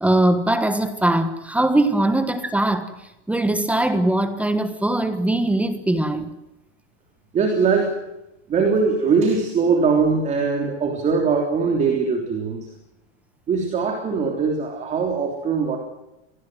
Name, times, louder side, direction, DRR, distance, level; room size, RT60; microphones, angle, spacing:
voice 1, 0.0-2.9 3.3-6.3, right 1 dB, 5° right, 10 dB, 1.4 m, -21 dB
voice 2, 7.3-8.0 8.5-12.7 13.5-15.8, right 5 dB, 20° right, 3 dB, 3.3 m, -21 dB
26.5 x 20.0 x 7.7 m, 0.89 s
supercardioid pair, 165°, 32 cm